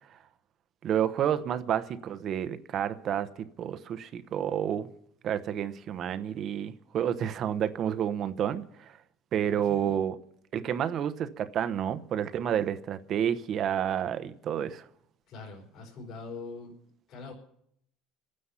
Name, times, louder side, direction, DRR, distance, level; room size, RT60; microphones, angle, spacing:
voice 1, 0.8-4.9 5.2-8.9 9.3-10.2 10.5-14.8, right 9 dB, 35° right, 0.9 m, -30 dB
voice 2, 15.3-16.7 17.1-17.3, left 3 dB, 50° left, 4.6 m, -42 dB
26.0 x 9.7 x 5.8 m
cardioid pair, 165°, 0 cm